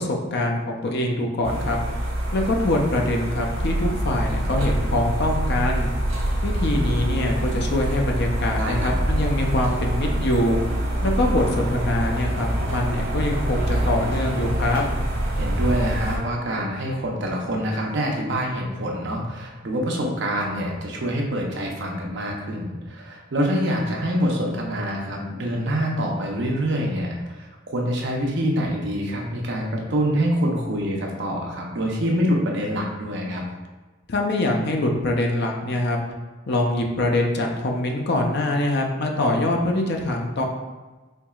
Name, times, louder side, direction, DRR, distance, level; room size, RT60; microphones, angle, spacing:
voice 1, 0.0-1.8 2.3-5.9 6.4-10.6 11.0-14.9 34.1-36.0 36.5-40.4, left 1 dB, 55° left, 1 dB, 0.6 m, -24 dB
sound 1, 1.4-16.2, right 1 dB, 85° right, 1.1 m, -25 dB
voice 2, 8.6-8.9 15.3-33.5, equal, 60° right, 0 dB, 0.7 m, -25 dB
4.5 x 2.9 x 2.3 m, 1.2 s
head